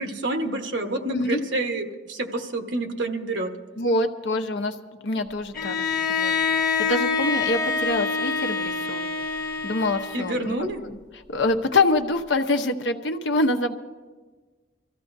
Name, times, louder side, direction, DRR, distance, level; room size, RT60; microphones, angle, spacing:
voice 1, 0.0-3.5 10.1-10.8, right 2 dB, 85° right, 4 dB, 1.2 m, -28 dB
voice 2, 3.8-4.8 5.0-6.3 6.8-9.1 9.6-10.7 11.3-13.7, left 2 dB, 80° left, 6 dB, 0.8 m, -25 dB
Bowed string instrument, 5.5-10.6, left 5 dB, 50° left, 1.2 m, -26 dB
25.0 x 14.5 x 2.7 m, 1.3 s
head